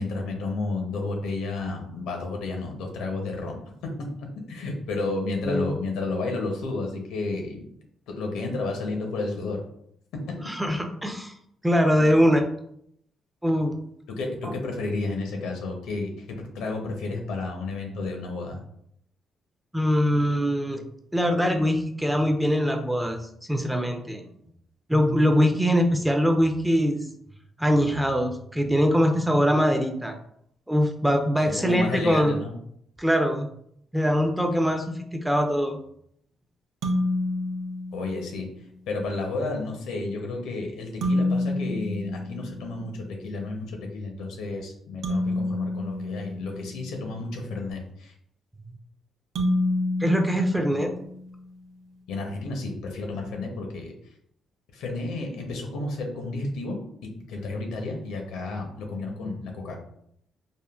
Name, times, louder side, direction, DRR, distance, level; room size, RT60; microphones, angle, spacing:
voice 1, 0.0-7.6 8.1-9.6 10.3-10.4 14.1-18.6 31.4-32.5 37.9-38.5 38.9-48.1 52.1-53.9 54.7-56.7 57.3-59.8, left 3 dB, 90° left, 2 dB, 0.6 m, -31 dB
voice 2, 10.4-11.3 11.6-12.4 13.4-13.8 19.7-20.8 21.1-23.2 23.5-24.2 24.9-27.1 27.6-30.1 30.7-32.4 33.0-33.5 33.9-35.8 50.0-50.9, equal, 5° right, 5 dB, 0.4 m, -22 dB
sound 1, 36.8-38.5 41.0-43.0 45.0-47.2 49.4-51.4, left 1 dB, 75° right, 0.5 m, -28 dB
3.5 x 2.1 x 2.3 m, 0.71 s
cardioid pair, 90°, 0 cm